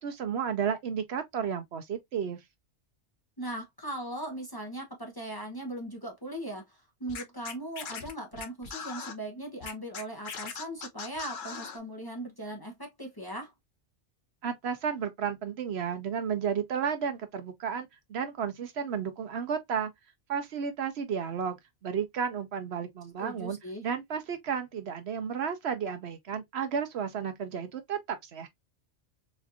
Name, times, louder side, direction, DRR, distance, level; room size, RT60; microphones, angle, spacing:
voice 1, 0.0-2.4 14.4-19.9 20.3-21.6 21.8-28.5, right 7 dB, 65° right, 0.9 m, -32 dB
voice 2, 3.4-13.5 23.2-23.8, right 1 dB, 20° left, 0.8 m, -39 dB
Scratching (performance technique), 7.1-9.1 9.6-11.8, left 6 dB, 50° left, 0.8 m, -39 dB
4.2 x 2.5 x 2.6 m
omnidirectional pair, 1.2 m